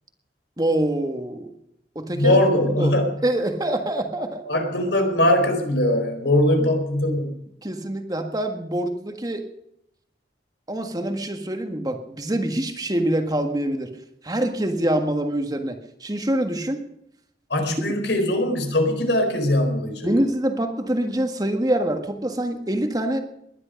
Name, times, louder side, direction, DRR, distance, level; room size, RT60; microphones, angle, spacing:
voice 1, 0.6-1.5 2.0-2.4 2.8-3.0 3.2-4.5 6.6-6.7 7.6-9.5 10.7-13.9 14.2-16.8 17.6-17.9 20.0-23.2, right 1 dB, 20° right, 6 dB, 1.6 m, -25 dB
voice 2, 2.1-3.1 4.5-7.3 17.5-20.1, left 1 dB, 80° left, 5 dB, 4.6 m, -21 dB
21.0 x 11.0 x 5.3 m, 0.77 s
head